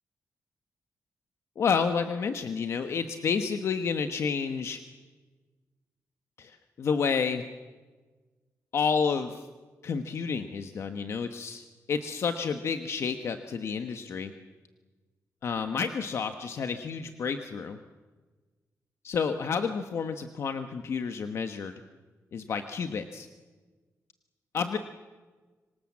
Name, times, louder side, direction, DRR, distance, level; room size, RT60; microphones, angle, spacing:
voice 1, 1.6-4.8 6.4-7.4 8.7-9.5 9.8-14.3 15.4-17.8 19.0-21.7 22.3-23.3 24.5-24.8, left 6 dB, 55° left, 8 dB, 1.2 m, -30 dB
26.5 x 24.5 x 7.4 m, 1.3 s
wide cardioid pair, 175°, 6 cm